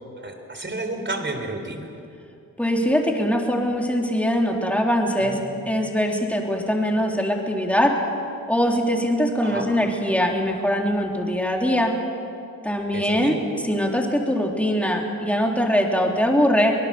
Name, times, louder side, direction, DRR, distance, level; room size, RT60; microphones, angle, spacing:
voice 1, 0.2-1.9 5.2-5.4 9.4-9.7 12.9-13.4, right 2 dB, 35° right, 5 dB, 3.7 m, -31 dB
voice 2, 2.6-5.4 5.7-8.0 8.5-11.9 12.6-13.4 13.6-16.8, equal, 5° left, 0 dB, 3.5 m, -22 dB
24.5 x 20.0 x 7.0 m, 2.6 s
cardioid pair, 80°, 34 cm